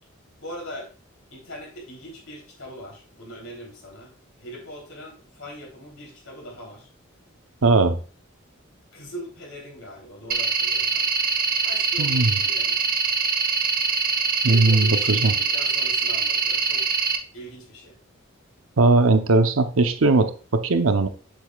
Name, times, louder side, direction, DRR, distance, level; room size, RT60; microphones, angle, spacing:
voice 1, 0.4-0.9 1.3-4.1 4.4-6.9 8.9-11.1 11.6-12.8 14.4-16.8 17.3-17.9, equal, 85° left, -1 dB, 3.4 m, -40 dB
voice 2, 7.6-8.0 12.0-12.3 14.4-15.3 18.8-21.1, right 3 dB, 80° right, 8 dB, 0.8 m, -19 dB
sound 1, 10.3-17.2, right 5 dB, 45° right, 0.9 m, -23 dB
7.6 x 6.9 x 2.4 m, 0.38 s
head